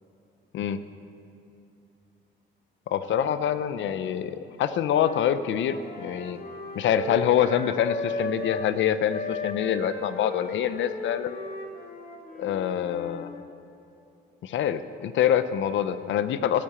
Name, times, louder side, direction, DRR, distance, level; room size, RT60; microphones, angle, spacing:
voice 1, 2.9-6.4 6.7-11.4 12.4-13.3 14.4-16.6, left 9 dB, 70° left, 12 dB, 0.6 m, -25 dB
Wind instrument woodwind instrument, 4.8-8.7 9.1-13.4, left 2 dB, 50° left, 1.9 m, -36 dB
14.0 x 8.4 x 6.8 m, 2.7 s
cardioid pair, 90°, 20 cm